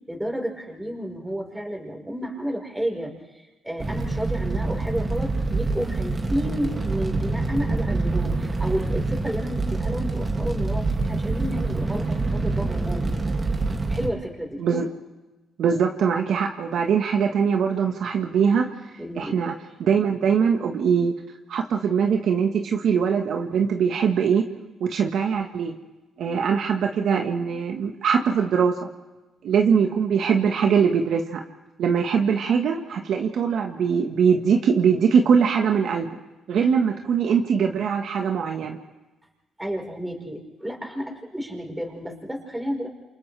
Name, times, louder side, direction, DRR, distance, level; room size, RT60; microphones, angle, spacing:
voice 1, 0.0-13.1 13.9-14.6 19.0-19.3 39.6-42.9, equal, 10° right, 0 dB, 4.7 m, -31 dB
Fire, 3.8-14.1, right 3 dB, 30° right, 2.4 m, -26 dB
voice 2, 15.6-18.7 19.1-19.5 19.8-21.1 21.5-24.4 24.8-25.7 26.2-28.7 29.4-31.4 31.8-36.2 36.5-38.8, right 6 dB, 70° right, 3 dB, 1.4 m, -22 dB
28.5 x 28.0 x 3.4 m, 1.1 s
cardioid pair, 90°, 0 cm